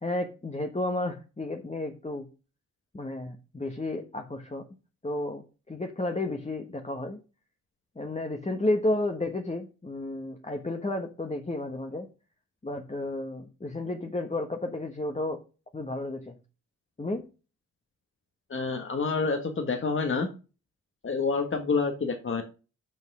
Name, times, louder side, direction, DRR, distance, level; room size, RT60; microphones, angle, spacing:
voice 1, 0.0-2.3 2.9-4.6 5.0-7.2 8.0-12.1 12.6-15.4 15.7-16.3 17.0-17.2, left 2 dB, 20° left, 4 dB, 1.3 m, -32 dB
voice 2, 18.5-20.3 21.0-22.4, left 4 dB, 40° left, 5 dB, 1.5 m, -28 dB
6.1 x 5.5 x 6.1 m, 0.32 s
supercardioid pair, 50°, 32 cm